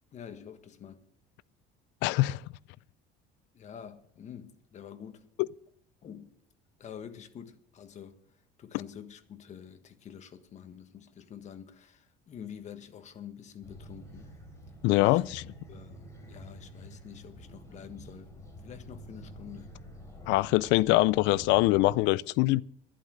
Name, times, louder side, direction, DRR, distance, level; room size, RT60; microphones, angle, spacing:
voice 1, 0.1-1.0 3.5-5.3 6.0-6.3 6.8-8.2 8.6-14.3 15.0-15.2 15.7-18.4 18.6-19.7, left 8 dB, 40° left, 1.4 m, -47 dB
voice 2, 2.0-2.4 5.4-5.5 14.8-15.4 20.3-22.6, left 19 dB, 75° left, 0.4 m, -23 dB
sound 1, 13.6-22.0, equal, 15° left, 4.0 m, -48 dB
11.5 x 11.0 x 6.3 m
cardioid pair, 135°, 19 cm